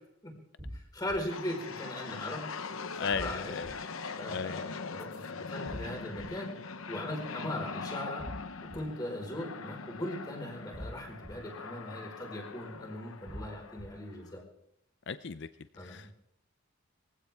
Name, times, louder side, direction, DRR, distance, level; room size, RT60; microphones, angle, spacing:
sound 1, 0.6-1.2 3.1-3.7 5.7-6.2 8.2-8.8 10.7-11.3 13.3-13.8, equal, 25° right, 3.7 m, -43 dB
voice 1, 0.7-2.5 3.0-3.5 4.2-6.5 6.9-8.3 8.6-14.4 15.8-16.1, left 1 dB, 20° left, 0 dB, 4.8 m, -39 dB
sound 2, 1.3-14.4, left 4 dB, 75° left, 1.0 m, -42 dB
voice 2, 2.9-3.7 4.3-4.7 15.1-15.5 15.8-16.2, left 5 dB, 55° left, 12 dB, 0.5 m, -36 dB
23.0 x 15.5 x 3.6 m, 0.80 s
head